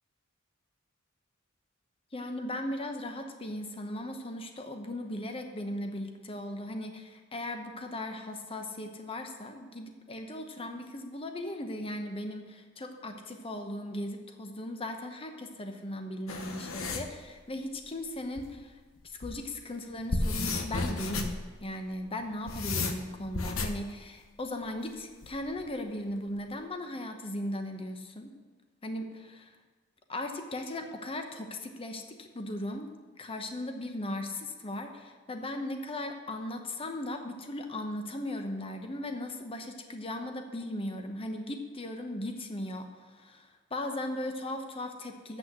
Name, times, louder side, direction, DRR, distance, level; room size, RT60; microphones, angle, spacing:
voice 1, 2.1-18.7 19.2-28.3 28.8-29.5 30.1-32.9 33.2-45.4, left 1 dB, 25° left, 5 dB, 0.9 m, -37 dB
sound 1, 16.3-17.1 18.4-18.5 19.0-19.4 19.9-21.4 22.2-23.8 25.2-25.6, left 3 dB, 65° left, 0.9 m, -33 dB
8.0 x 6.2 x 7.8 m, 1.4 s
head